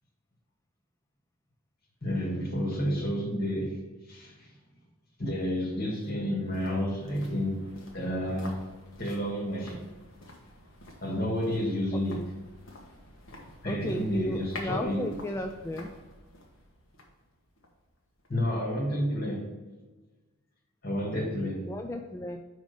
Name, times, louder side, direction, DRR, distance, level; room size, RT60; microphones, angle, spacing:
voice 1, 2.0-4.5 5.2-8.6 9.0-9.9 11.0-12.3 13.6-15.1 18.3-19.5 20.8-21.7, equal, 45° left, 1.7 m, -30 dB
sound 1, 5.4-18.5 18.8-18.9, left 1 dB, 65° left, 1.4 m, -49 dB
voice 2, 13.7-15.9 21.6-22.4, left 1 dB, 15° left, 0.3 m, -34 dB
5.2 x 5.0 x 5.3 m
head